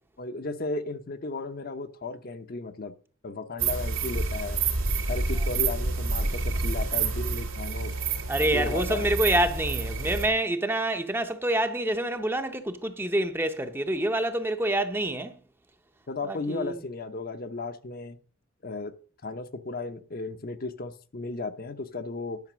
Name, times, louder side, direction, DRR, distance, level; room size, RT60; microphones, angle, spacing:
voice 1, 0.2-2.9 3.2-4.6 5.1-7.9 8.5-9.1 16.1-18.2 18.6-18.9 19.2-22.4, left 3 dB, 45° left, 0.7 m, -35 dB
sound 1, 3.6-10.3, right 4 dB, 85° right, 2.3 m, -28 dB
voice 2, 8.3-15.4 16.3-16.8, right 1 dB, 10° right, 0.6 m, -27 dB
10.5 x 5.8 x 6.1 m
head